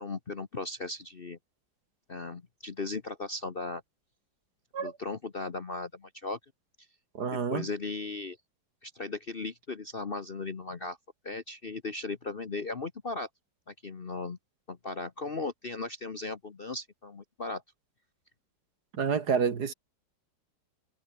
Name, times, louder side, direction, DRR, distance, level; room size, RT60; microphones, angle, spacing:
voice 1, 0.0-1.4 2.1-3.8 4.8-6.4 7.2-8.4 8.8-11.0 11.2-13.3 13.7-14.4 14.7-17.6, left 3 dB, 35° left, 1.0 m, -37 dB
voice 2, 7.1-7.7 19.0-19.7, right 6 dB, 60° right, 2.2 m, -28 dB
omnidirectional pair, 2.0 m